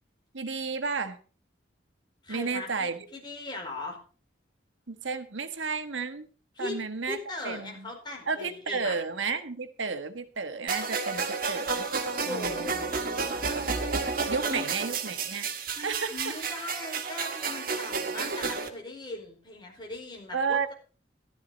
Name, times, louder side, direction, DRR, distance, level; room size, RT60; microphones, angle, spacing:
voice 1, 0.3-1.2 2.3-3.0 4.9-6.3 6.6-7.2 7.4-7.9 8.3-11.9 12.2-12.7 13.9-15.5 15.8-16.3 20.3-20.7, right 5 dB, 85° right, 10 dB, 1.4 m, -32 dB
voice 2, 2.2-4.0 6.6-6.8 7.0-9.0 12.1-13.6 14.5-14.6 15.8-20.7, left 2 dB, 25° left, 1 dB, 4.6 m, -39 dB
sound 1, 10.7-18.7, right 4 dB, 50° right, 1.7 m, -31 dB
14.5 x 12.5 x 4.1 m, 0.38 s
head